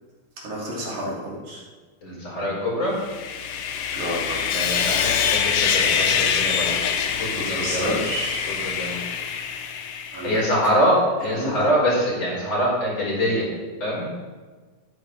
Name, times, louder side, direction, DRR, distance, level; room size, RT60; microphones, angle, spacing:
voice 1, 0.4-1.6 3.9-4.4 7.3-8.4 10.1-10.4 11.3-11.6, right 1 dB, 60° right, -6 dB, 4.2 m, -30 dB
voice 2, 2.0-2.9 4.5-6.8 7.2-8.0 8.5-9.0 10.2-13.5 13.8-14.1, equal, 35° left, -6 dB, 5.7 m, -24 dB
Sawing, 3.0-10.4, left 7 dB, 75° left, 1.4 m, -25 dB
14.0 x 13.5 x 3.5 m, 1.4 s
omnidirectional pair, 3.9 m